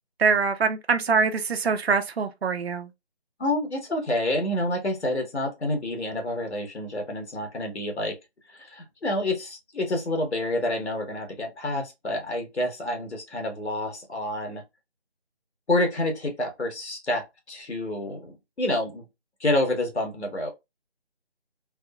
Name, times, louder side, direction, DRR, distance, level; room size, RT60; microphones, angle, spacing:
voice 1, 0.2-2.9, right 5 dB, 70° right, 0.5 m, -24 dB
voice 2, 3.4-8.2 8.5-14.6 15.7-19.1 19.4-20.5, left 1 dB, 85° left, 1.3 m, -28 dB
3.5 x 2.0 x 2.2 m
figure-of-eight pair, 175°, 33 cm